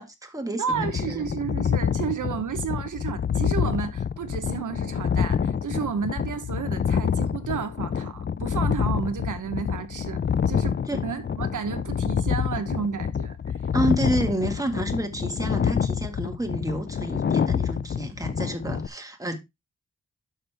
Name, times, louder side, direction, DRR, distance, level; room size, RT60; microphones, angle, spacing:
voice 1, 0.0-1.3 10.9-11.1 13.7-19.4, right 1 dB, 10° right, 1.8 m, -29 dB
voice 2, 0.6-13.6, right 7 dB, 75° right, 1.0 m, -32 dB
sound 1, 0.7-18.9, left 7 dB, 35° left, 0.5 m, -27 dB
12.0 x 5.3 x 3.4 m
wide cardioid pair, 120°, 31 cm